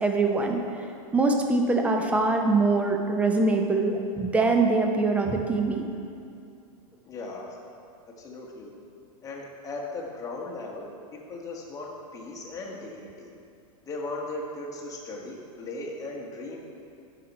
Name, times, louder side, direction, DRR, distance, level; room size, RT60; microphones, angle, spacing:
voice 1, 0.0-0.6 1.1-5.9, right 3 dB, 5° right, 3 dB, 0.6 m, -23 dB
voice 2, 7.0-7.6 8.2-8.7 9.2-13.3 13.9-16.6, left 2 dB, 20° left, -2 dB, 1.2 m, -37 dB
9.2 x 5.9 x 4.1 m, 2.5 s
supercardioid pair, 140°, 18 cm